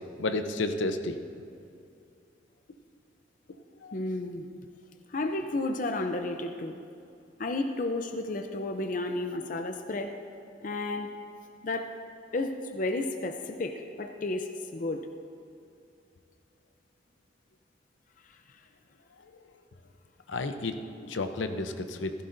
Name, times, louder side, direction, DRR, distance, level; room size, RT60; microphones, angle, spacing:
voice 1, 0.2-1.2 3.8-4.0 20.3-22.1, left 2 dB, 85° left, 7 dB, 0.7 m, -31 dB
voice 2, 3.9-4.5 5.1-6.8 7.4-10.2 10.6-11.1 11.6-11.9 12.3-15.1, left 2 dB, 45° left, 6 dB, 0.5 m, -32 dB
15.5 x 15.0 x 2.6 m, 2.5 s
head